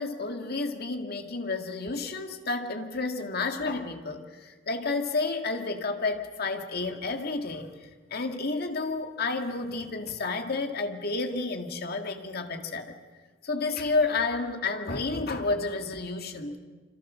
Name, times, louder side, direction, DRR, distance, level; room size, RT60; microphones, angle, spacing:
voice 1, 0.0-7.7 8.1-12.9 13.4-16.6, left 3 dB, 55° left, 5 dB, 2.2 m, -30 dB
27.0 x 26.0 x 6.4 m, 1.4 s
head